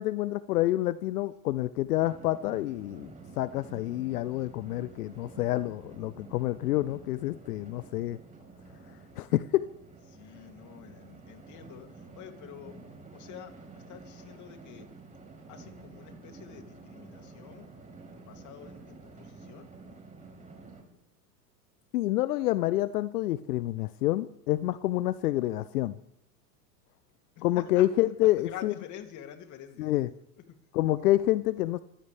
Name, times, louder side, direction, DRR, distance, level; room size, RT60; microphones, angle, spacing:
voice 1, 0.0-8.2 9.2-9.6 21.9-25.9 27.4-28.7 29.8-30.1 30.7-31.8, left 15 dB, 65° left, 15 dB, 0.8 m, -28 dB
sound 1, 2.0-20.8, right 3 dB, 15° right, 4.7 m, -50 dB
voice 2, 10.1-12.8 13.1-14.9 15.5-19.7 27.3-27.9 28.2-29.9 30.5-30.6, left 10 dB, 35° left, 5 dB, 2.8 m, -48 dB
26.0 x 16.0 x 3.4 m, 0.78 s
hypercardioid pair, 110°, 49 cm